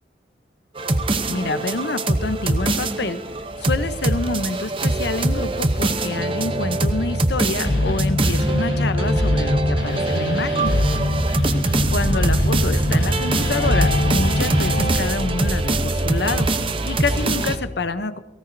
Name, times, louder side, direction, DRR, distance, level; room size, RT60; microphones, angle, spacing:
sound 1, 0.8-17.6, right 2 dB, 30° right, 0.8 m, -23 dB
voice 1, 1.3-3.2 3.6-10.7 11.9-16.5 16.9-18.2, left 3 dB, 60° left, 12 dB, 0.8 m, -27 dB
sound 2, 3.3-15.0, left 1 dB, 80° left, 5.4 m, -23 dB
18.5 x 16.5 x 2.7 m, 1.1 s
head